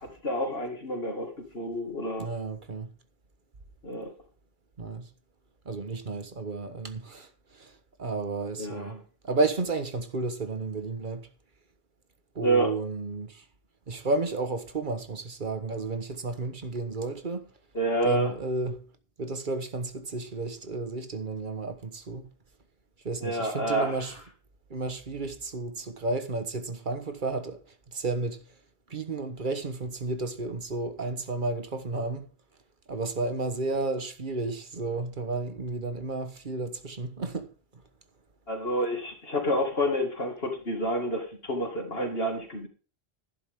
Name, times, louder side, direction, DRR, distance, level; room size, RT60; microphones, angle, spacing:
voice 1, 0.0-2.3 3.8-4.1 8.6-9.0 12.4-12.7 17.7-18.3 23.2-24.0 38.5-42.7, equal, 70° left, 2.6 m, -29 dB
voice 2, 2.2-2.9 4.8-5.1 5.6-7.7 8.0-9.0 9.2-11.3 12.3-13.4 13.9-17.5 18.0-18.9 19.2-22.3 23.0-24.1 24.7-27.6 27.9-28.4 28.9-32.3 32.9-37.5, right 3 dB, 50° right, 1.4 m, -32 dB
11.0 x 11.0 x 3.7 m
omnidirectional pair, 1.0 m